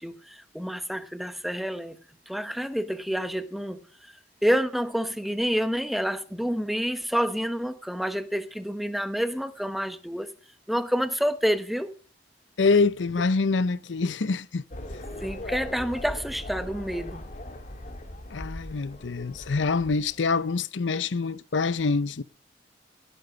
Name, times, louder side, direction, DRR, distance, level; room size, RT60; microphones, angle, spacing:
voice 1, 0.0-2.0 2.3-4.1 4.4-10.3 10.7-11.9 15.2-17.2, equal, ahead, 0.9 m, -28 dB
voice 2, 12.6-14.6 18.3-22.2, left 4 dB, 85° left, 0.7 m, -25 dB
sound 1, 14.7-20.3, left 1 dB, 45° left, 2.0 m, -39 dB
17.5 x 9.3 x 5.0 m
head